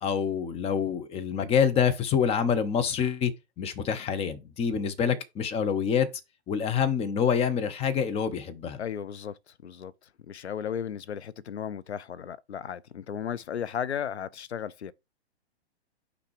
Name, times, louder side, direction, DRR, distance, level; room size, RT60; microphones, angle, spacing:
voice 1, 0.0-3.3 3.6-6.1 6.5-8.8, left 7 dB, 20° left, 0.9 m, -26 dB
voice 2, 8.8-9.4 9.6-9.9 10.3-14.9, left 8 dB, 85° left, 0.6 m, -35 dB
6.0 x 3.9 x 4.7 m
hypercardioid pair, 125°, 33 cm